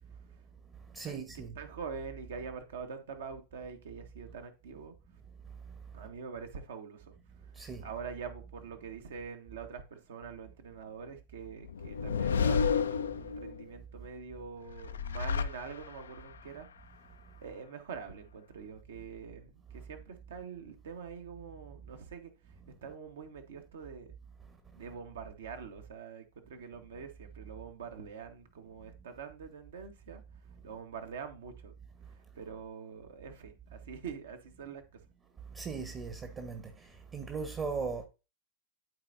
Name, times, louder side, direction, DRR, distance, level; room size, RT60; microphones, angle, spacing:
voice 1, 0.9-1.5 7.6-7.8 35.6-36.6 37.1-38.0, right 5 dB, 25° right, 1.0 m, -37 dB
voice 2, 1.5-4.9 5.9-7.1 7.8-16.7 17.4-22.6 22.8-24.1 24.7-30.2 30.6-31.7 32.1-35.0, right 6 dB, 60° right, 1.3 m, -45 dB
sound 1, 11.6-13.6 14.7-16.2, left 6 dB, 70° left, 0.4 m, -31 dB
12.5 x 4.2 x 2.6 m
figure-of-eight pair, 90°, 0 cm